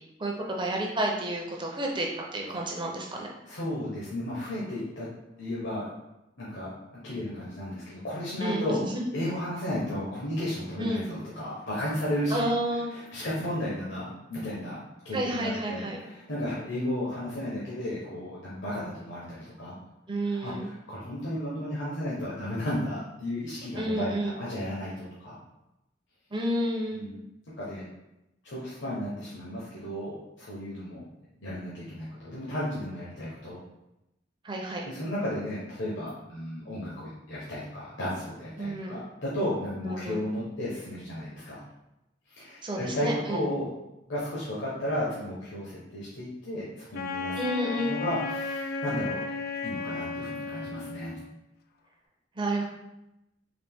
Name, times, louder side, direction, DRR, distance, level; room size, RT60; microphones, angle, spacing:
voice 1, 0.2-3.3 8.4-9.1 10.8-11.1 12.3-12.9 15.1-16.0 20.1-20.7 23.7-24.4 26.3-27.0 34.4-34.9 38.6-39.0 39.8-40.2 42.6-43.5 47.4-48.0 52.4-52.7, right 1 dB, 25° right, 0 dB, 0.6 m, -30 dB
voice 2, 3.5-5.1 5.4-5.9 6.4-6.7 7.0-8.8 9.1-12.5 12.9-19.8 20.3-25.4 26.9-27.2 27.6-27.9 28.4-31.0 31.4-33.6 34.8-41.6 42.3-43.7 44.1-47.4 47.8-49.2 49.6-51.1, left 1 dB, 75° left, -8 dB, 0.9 m, -34 dB
Wind instrument woodwind instrument, 46.9-51.3, left 4 dB, 55° left, 0.4 m, -34 dB
4.0 x 2.5 x 3.5 m, 0.90 s
head